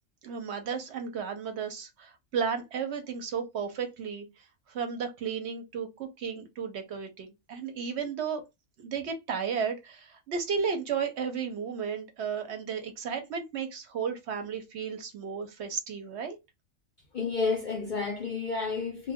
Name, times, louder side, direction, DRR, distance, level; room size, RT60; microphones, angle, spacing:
voice 1, 0.2-4.3 4.7-8.4 8.8-16.4, right 6 dB, 65° right, 0.8 m, -33 dB
voice 2, 17.1-19.1, left 4 dB, 60° left, 0.5 m, -30 dB
2.2 x 2.1 x 3.4 m
omnidirectional pair, 1.4 m